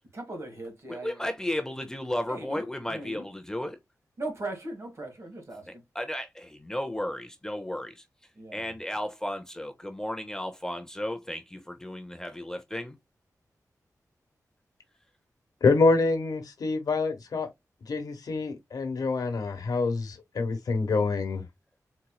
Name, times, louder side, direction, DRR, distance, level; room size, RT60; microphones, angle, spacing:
voice 1, 0.1-1.2 2.3-2.6 2.9-3.2 4.2-5.7 8.4-8.6, right 2 dB, 45° right, 1.4 m, -38 dB
voice 2, 0.9-3.8 5.6-13.0, left 1 dB, 10° left, 0.5 m, -34 dB
voice 3, 15.6-17.5 17.9-21.4, left 3 dB, 90° left, 1.0 m, -26 dB
4.2 x 2.9 x 2.2 m
wide cardioid pair, 160°, 6 cm